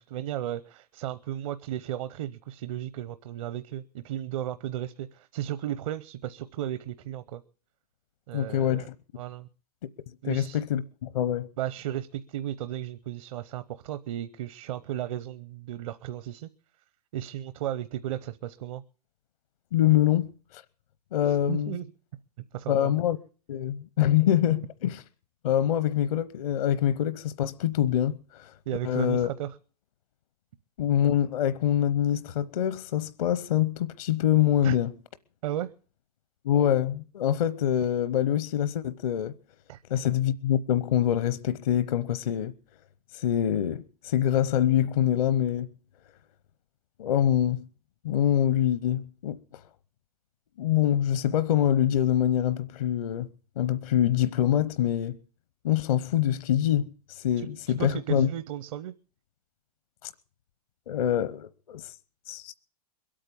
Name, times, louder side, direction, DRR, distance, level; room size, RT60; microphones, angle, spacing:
voice 1, 0.0-7.4 8.3-8.9 9.2-9.5 10.2-10.6 11.6-16.5 17.1-18.8 21.3-21.8 22.5-22.9 28.7-29.5 34.6-34.8 35.4-35.7 39.7-39.8 57.4-58.9, right 12 dB, 60° right, 0.8 m, -34 dB
voice 2, 8.3-8.9 10.2-11.5 19.7-20.6 21.1-21.8 22.7-23.2 23.5-25.0 25.4-28.5 28.8-29.3 30.8-34.9 36.4-39.3 39.9-42.5 43.1-45.7 47.0-47.7 48.0-49.4 50.6-53.3 53.6-55.2 55.6-58.3 60.0-60.1 60.9-61.9 62.3-62.5, left 11 dB, 70° left, 0.9 m, -25 dB
22.0 x 8.8 x 7.0 m
hypercardioid pair, 115°, 20 cm